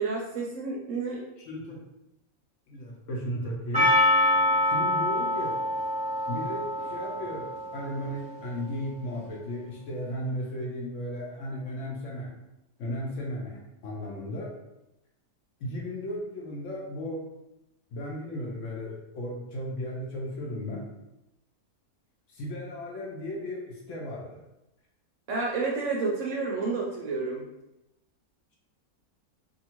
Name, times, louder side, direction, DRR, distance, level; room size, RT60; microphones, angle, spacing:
voice 1, 0.0-1.2 25.3-27.4, right 4 dB, 65° right, -2 dB, 0.8 m, -30 dB
voice 2, 1.4-1.8 2.7-3.9 4.6-5.5 6.3-12.3 12.8-14.5 15.6-17.2 17.9-20.9 22.3-24.4, equal, 65° left, -2 dB, 0.9 m, -35 dB
Percussion, 3.7-8.3, left 1 dB, 10° right, 0.4 m, -26 dB
2.7 x 2.5 x 2.9 m, 0.90 s
omnidirectional pair, 1.6 m